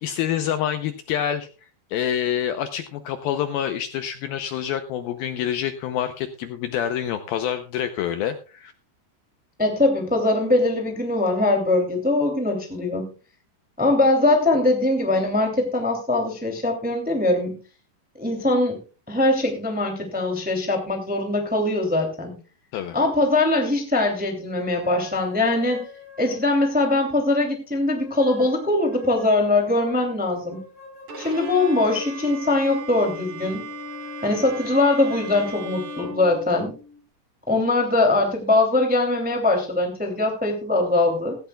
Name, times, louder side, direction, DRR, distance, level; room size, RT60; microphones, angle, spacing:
voice 1, 0.0-8.7 22.7-23.0, left 10 dB, 75° left, 8 dB, 2.3 m, -27 dB
voice 2, 9.6-13.1 13.8-17.6 18.1-18.8 19.1-22.4 22.9-25.9 26.2-30.6 31.2-33.6 34.2-36.7 37.5-41.4, left 2 dB, 5° right, 3 dB, 1.5 m, -22 dB
sound 1, 24.6-27.3 27.9-33.0 33.6-36.1, left 3 dB, 15° left, 7.1 m, -45 dB
Bowed string instrument, 31.1-37.0, equal, 85° right, 1.1 m, -37 dB
16.0 x 15.5 x 2.3 m, 0.34 s
omnidirectional pair, 4.9 m